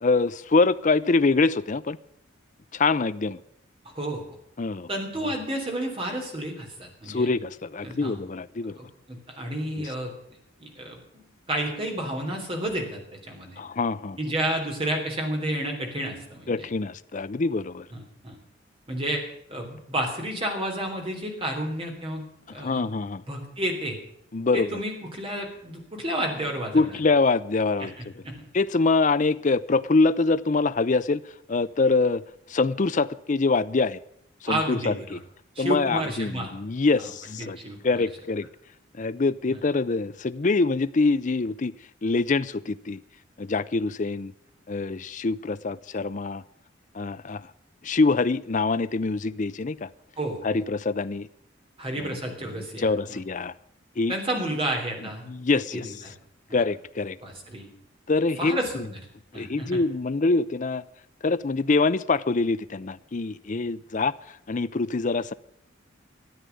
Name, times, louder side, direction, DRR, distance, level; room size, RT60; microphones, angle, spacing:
voice 1, 0.0-2.0 2.7-3.4 4.6-4.9 7.1-8.8 9.8-9.9 13.6-14.2 16.5-17.9 22.6-23.2 24.3-24.8 26.7-27.9 28.5-31.2 31.5-32.2 32.5-34.0 34.4-35.2 35.6-37.6 37.8-38.5 39.0-41.7 42.0-43.0 43.4-44.3 44.7-46.4 46.9-47.5 47.8-49.9 50.4-51.3 52.0-52.1 52.6-53.5 54.0-54.1 55.3-55.9 56.5-57.2 58.1-58.8 59.3-60.8 61.2-64.1 64.5-65.3, left 3 dB, 40° left, 14 dB, 0.5 m, -24 dB
voice 2, 4.9-7.3 7.8-8.2 8.8-10.1 10.6-11.2 11.5-13.6 14.2-16.7 17.9-18.4 18.9-19.2 19.5-22.2 22.5-22.8 23.3-24.0 24.5-27.0 27.8-28.4 34.5-35.1 35.6-36.5 37.0-38.0 50.2-50.6 51.8-53.2 54.1-55.2 55.5-56.1 56.5-56.6 57.2-57.7 58.4-59.1 59.3-59.8, right 1 dB, 25° right, 2 dB, 3.5 m, -31 dB
13.5 x 9.0 x 9.4 m, 0.72 s
head